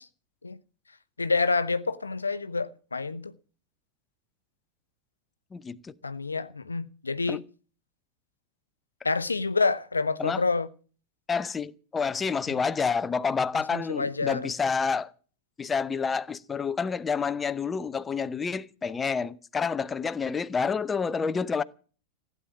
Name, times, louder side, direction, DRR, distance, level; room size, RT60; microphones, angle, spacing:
voice 1, 1.2-3.3 6.0-7.4 9.0-10.7 13.7-14.5, left 4 dB, 80° left, 0.8 m, -28 dB
voice 2, 5.5-5.9 7.3-7.4 10.2-10.4 11.3-15.1 15.6-21.6, left 5 dB, 15° left, 0.8 m, -29 dB
15.5 x 9.5 x 8.6 m
figure-of-eight pair, 90°, 0 cm